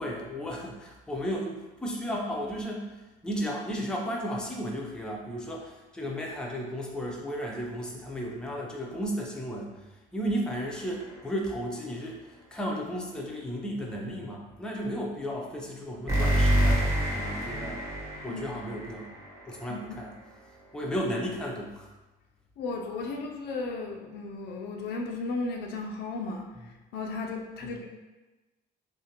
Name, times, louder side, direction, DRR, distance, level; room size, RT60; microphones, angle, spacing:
voice 1, 0.0-9.7 10.1-17.8 18.2-19.1 19.5-20.1 20.7-21.9 27.6-27.8, equal, 5° left, -2 dB, 0.5 m, -34 dB
sound 1, 10.6-11.3 16.1-19.7, right 1 dB, 15° right, 1.0 m, -28 dB
voice 2, 19.7-20.0 22.6-26.5 26.9-27.9, left 3 dB, 80° left, 2 dB, 0.4 m, -35 dB
2.5 x 2.4 x 2.8 m, 1.1 s
cardioid pair, 110°, 17 cm